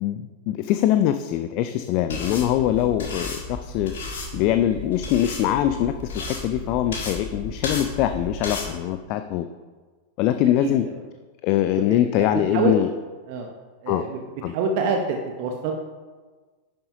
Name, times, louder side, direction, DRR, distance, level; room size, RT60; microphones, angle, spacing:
voice 1, 0.0-3.9 4.3-9.5 10.2-10.9 11.4-12.9 13.9-14.0 14.4-14.5, left 12 dB, 40° left, 9 dB, 0.4 m, -23 dB
sound 1, 2.1-8.7, left 2 dB, 60° left, 2.3 m, -33 dB
voice 2, 10.6-10.9 12.2-12.3 12.5-12.8 13.3-13.5 13.8-14.2 14.5-15.7, right 5 dB, 45° right, 3 dB, 0.9 m, -26 dB
11.0 x 8.8 x 2.8 m, 1.4 s
figure-of-eight pair, 90°, 0 cm